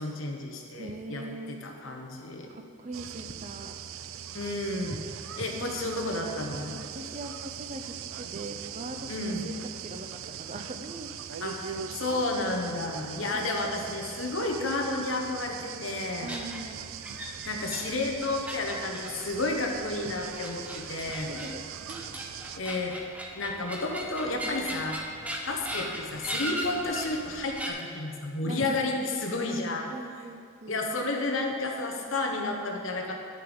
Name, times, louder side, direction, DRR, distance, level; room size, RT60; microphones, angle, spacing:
voice 1, 0.0-2.5 4.3-5.0 5.4-6.8 9.1-9.4 11.4-11.7 11.9-16.3 17.4-21.3 22.5-22.9 23.3-25.0 25.5-29.9 30.7-33.1, left 2 dB, 70° left, 2 dB, 1.2 m, -31 dB
voice 2, 0.7-1.6 2.5-3.7 4.9-5.0 5.6-5.8 6.6-10.1 10.4-11.1 13.3-13.7 16.2-16.9 21.3-22.2 28.4-29.2 29.9-30.8, right 2 dB, 35° right, 6 dB, 0.6 m, -41 dB
sound 1, 2.9-22.6, right 8 dB, 80° right, 0.4 m, -41 dB
sound 2, 16.3-27.7, equal, 5° right, 0.8 m, -39 dB
10.0 x 6.7 x 5.3 m, 2.3 s
head